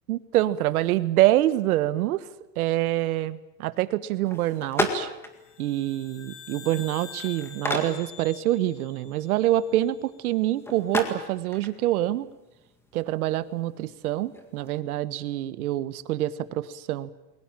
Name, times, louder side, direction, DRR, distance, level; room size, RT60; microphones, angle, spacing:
voice 1, 0.1-2.3 2.6-5.1 5.6-12.3 12.9-17.1, right 14 dB, 60° right, 15 dB, 1.4 m, -26 dB
sound 1, 4.3-14.7, left 1 dB, 5° left, 1.9 m, -36 dB
sound 2, 5.4-9.9, left 8 dB, 40° left, 3.2 m, -46 dB
29.0 x 22.0 x 7.5 m, 0.91 s
supercardioid pair, 175°, 49 cm